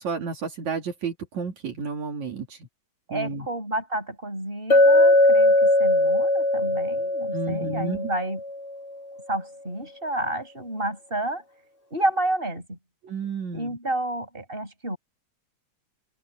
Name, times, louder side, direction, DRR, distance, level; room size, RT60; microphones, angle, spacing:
voice 1, 0.0-2.7 3.1-3.5 7.3-8.0 13.0-13.8, right 4 dB, 75° right, 4.5 m, -31 dB
voice 2, 3.1-8.4 9.3-11.4 11.9-12.8 13.5-15.0, right 1 dB, 15° right, 8.2 m, -30 dB
Chink clink, 4.7-8.7, left 1 dB, 25° left, 2.8 m, -20 dB
open air
omnidirectional pair, 3.3 m